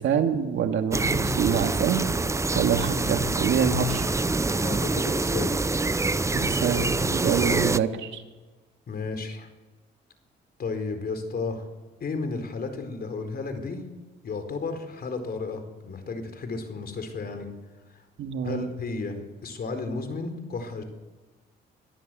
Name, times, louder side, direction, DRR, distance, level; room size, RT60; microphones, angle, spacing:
voice 1, 0.0-2.1 2.5-4.1 6.3-8.2 18.2-18.7, right 7 dB, 70° right, 5 dB, 2.4 m, -26 dB
sound 1, 0.9-7.8, right 3 dB, 15° right, 0.6 m, -26 dB
voice 2, 4.6-5.8 8.9-9.5 10.6-11.6 12.0-13.8 14.2-17.5 18.4-20.8, left 4 dB, 50° left, 7 dB, 4.3 m, -33 dB
23.5 x 14.5 x 7.7 m, 1.2 s
cardioid pair, 90°, 20 cm